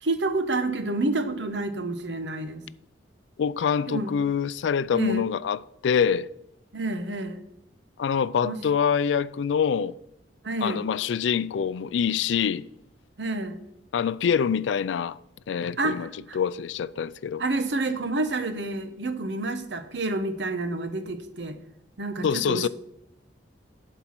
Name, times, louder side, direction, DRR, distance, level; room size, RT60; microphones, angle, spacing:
voice 1, 0.0-2.6 3.9-4.1 4.9-5.3 6.7-7.4 8.4-8.6 10.4-10.8 13.2-13.6 15.8-16.4 17.4-21.6 22.0-22.7, right 2 dB, 70° right, 1.0 m, -29 dB
voice 2, 3.4-6.3 8.0-9.9 10.6-12.7 13.9-15.2 15.5-16.1 16.3-17.4 22.2-22.7, left 7 dB, 80° left, 0.4 m, -25 dB
11.5 x 4.6 x 5.9 m
head